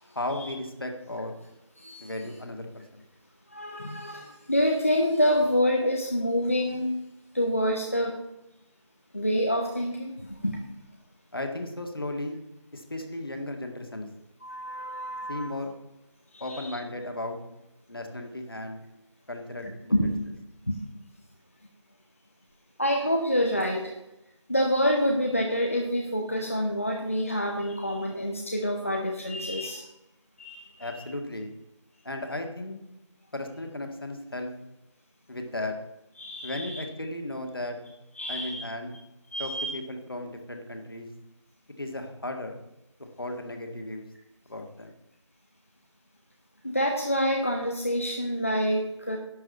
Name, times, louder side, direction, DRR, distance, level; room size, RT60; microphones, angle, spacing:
voice 1, 0.0-1.3 2.0-3.0 11.3-12.4 12.7-14.1 15.3-15.7 16.4-17.4 17.9-18.8 19.3-20.1 30.8-31.5 32.0-32.8 33.3-34.5 35.3-35.8 36.4-37.8 38.3-38.9 39.4-41.1 41.8-42.6 43.0-44.1 44.5-44.9, left 1 dB, 50° left, 4 dB, 1.8 m, -35 dB
voice 2, 3.5-6.9 7.3-8.1 9.1-10.1 10.4-10.6 14.4-15.5 16.3-16.8 19.6-20.2 20.7-20.8 22.8-23.9 24.5-29.8 30.4-31.0 36.2-36.8 38.2-38.7 39.3-39.7 46.6-49.2, equal, 25° left, 2 dB, 0.7 m, -27 dB
11.0 x 5.3 x 8.1 m, 0.90 s
figure-of-eight pair, 175°, 16 cm